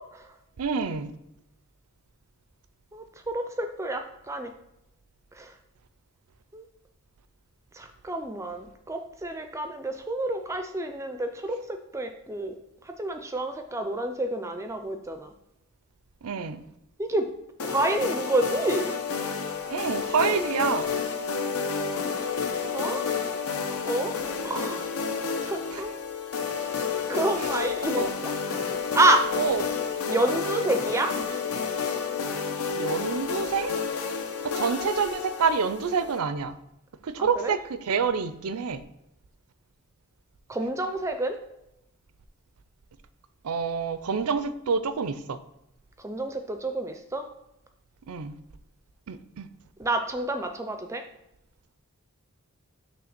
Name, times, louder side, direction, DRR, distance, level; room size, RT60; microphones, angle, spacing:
voice 1, 0.6-1.1 16.2-16.6 19.7-20.9 25.7-25.8 27.9-28.1 29.4-29.7 32.8-33.7 34.4-36.6 37.0-38.8 43.4-45.4 48.1-48.3 49.1-49.5, right 5 dB, 85° right, 13 dB, 0.5 m, -27 dB
voice 2, 2.9-4.5 5.3-5.5 6.5-6.6 7.7-12.5 12.8-15.3 17.0-17.3 17.6-18.9 22.7-23.0 23.8-24.1 24.4-24.8 25.4-25.9 27.1-29.4 30.1-31.1 37.2-37.5 40.5-41.4 46.0-47.2 49.8-51.0, right 1 dB, 15° right, 6 dB, 0.3 m, -28 dB
sound 1, 17.6-36.2, left 5 dB, 80° left, 0.8 m, -30 dB
6.2 x 3.2 x 5.9 m, 0.87 s
head